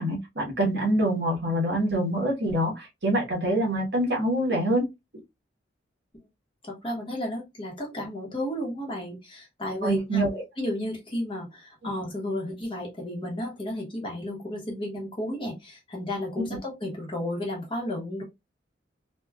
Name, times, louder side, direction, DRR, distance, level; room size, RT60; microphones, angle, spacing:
voice 1, 0.0-4.9 9.8-10.4 16.4-16.5, right 1 dB, 60° right, 1.2 m, -25 dB
voice 2, 6.6-10.2 10.6-18.2, left 1 dB, 25° left, 1.0 m, -33 dB
3.3 x 2.4 x 2.2 m
head